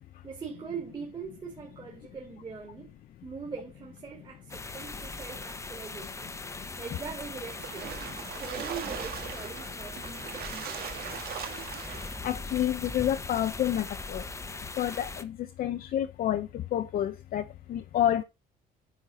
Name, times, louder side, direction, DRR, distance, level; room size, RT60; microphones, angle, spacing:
voice 1, 0.2-2.9 3.2-6.4 6.8-8.0 8.4-10.9, right 5 dB, 30° right, 2.7 m, -41 dB
sound 1, 4.5-15.2, left 3 dB, 15° left, 1.0 m, -40 dB
Splash splatter, 7.4-12.3, right 9 dB, 65° right, 1.7 m, -40 dB
voice 2, 12.2-14.2 14.8-17.4 17.7-18.2, left 11 dB, 60° left, 0.8 m, -29 dB
10.0 x 5.9 x 3.9 m
cardioid pair, 110°, 17 cm